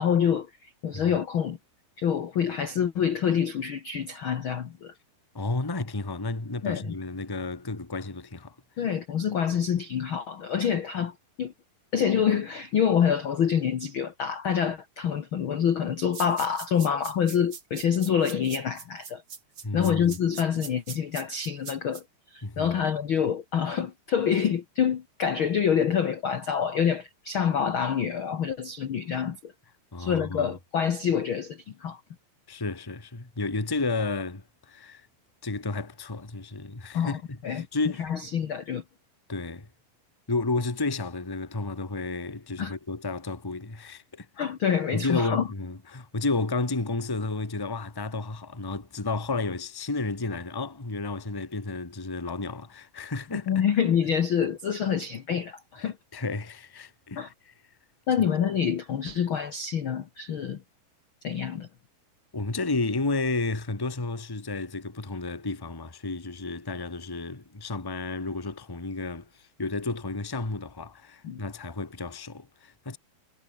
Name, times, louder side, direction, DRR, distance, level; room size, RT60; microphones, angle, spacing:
voice 1, 0.0-1.6 2.0-4.9 6.6-6.9 8.8-11.5 11.9-19.2 19.7-22.0 22.3-29.5 30.0-32.0 36.9-37.2 37.4-37.7 38.0-38.8 42.6-42.7 44.4-45.4 53.5-56.0 57.2-57.3 58.1-60.6 61.2-61.7 71.2-71.4, left 8 dB, 60° left, 1.4 m, -26 dB
voice 2, 5.3-8.5 19.6-20.2 22.4-22.8 29.9-30.6 32.5-35.1 35.4-38.1 39.3-39.7 40.3-44.3 44.9-53.6 55.8-57.5 62.3-73.0, left 3 dB, 10° left, 1.2 m, -32 dB
sound 1, 16.1-22.0, right 6 dB, 35° right, 2.6 m, -41 dB
omnidirectional pair, 4.3 m